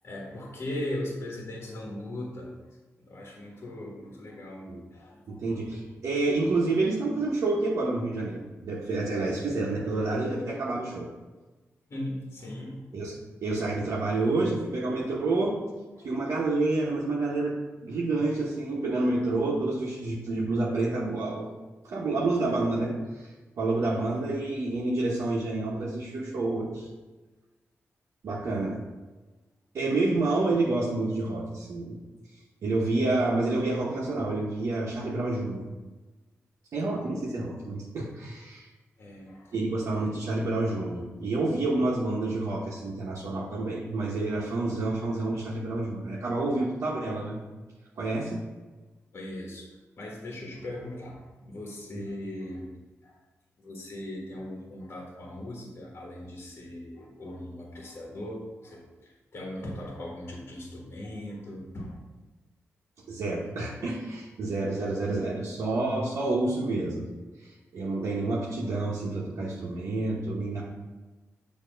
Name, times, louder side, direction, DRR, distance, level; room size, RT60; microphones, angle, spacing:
voice 1, 0.0-2.5 3.1-5.4 11.9-12.8 16.0-16.1 39.0-39.5 49.1-49.7 50.0-52.7 53.0-53.2 53.6-62.0, left 1 dB, 50° left, -2 dB, 1.3 m, -39 dB
voice 2, 5.3-11.1 12.9-13.1 13.4-15.6 16.0-21.5 21.8-26.9 28.2-28.8 29.7-32.0 32.6-35.7 36.7-38.7 39.5-47.4 48.0-48.4 51.9-52.1 63.1-67.1 67.4-70.6, right 2 dB, 75° right, -6 dB, 1.0 m, -28 dB
6.8 x 2.9 x 5.0 m, 1.2 s
cardioid pair, 75°, 5 cm